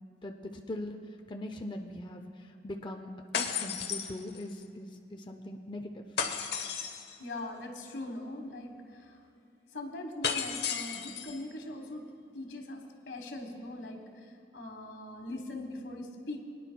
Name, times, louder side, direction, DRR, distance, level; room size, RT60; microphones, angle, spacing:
voice 1, 0.2-1.0 1.3-6.0, left 1 dB, 25° left, 4 dB, 0.5 m, -41 dB
sound 1, 3.3-4.6 6.2-7.2 10.2-11.4, left 7 dB, 65° left, 0.8 m, -34 dB
voice 2, 7.2-9.2 9.7-12.0 12.3-16.4, left 2 dB, 85° left, 4 dB, 1.5 m, -41 dB
23.0 x 10.0 x 2.3 m, 2.6 s
head